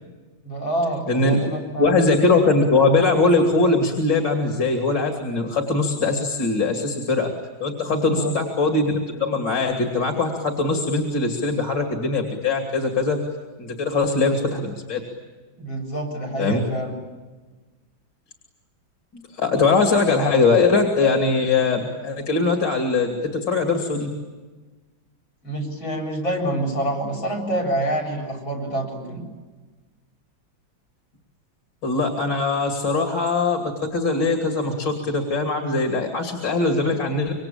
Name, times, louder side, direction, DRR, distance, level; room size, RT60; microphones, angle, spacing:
voice 1, 0.4-2.0 7.9-8.3 15.6-16.9 25.4-29.2, right 1 dB, 85° left, 0 dB, 8.4 m, -27 dB
voice 2, 1.8-7.3 7.6-13.2 13.6-15.0 16.4-16.6 19.1-24.1 31.8-33.6 33.9-37.3, left 3 dB, 65° left, 3 dB, 3.6 m, -21 dB
27.0 x 25.0 x 8.6 m, 1.3 s
omnidirectional pair, 2.1 m